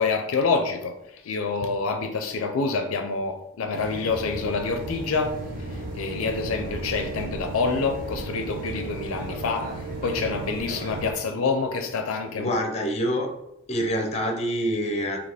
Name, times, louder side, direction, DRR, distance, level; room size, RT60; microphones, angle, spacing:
voice 1, 0.0-5.3 5.7-12.5, left 4 dB, 70° left, 5 dB, 0.4 m, -27 dB
sound 1, 3.7-11.1, right 2 dB, 45° right, 0.9 m, -34 dB
voice 2, 12.3-13.3 13.7-15.2, equal, 30° left, 3 dB, 0.6 m, -26 dB
4.0 x 2.8 x 3.5 m, 0.82 s
head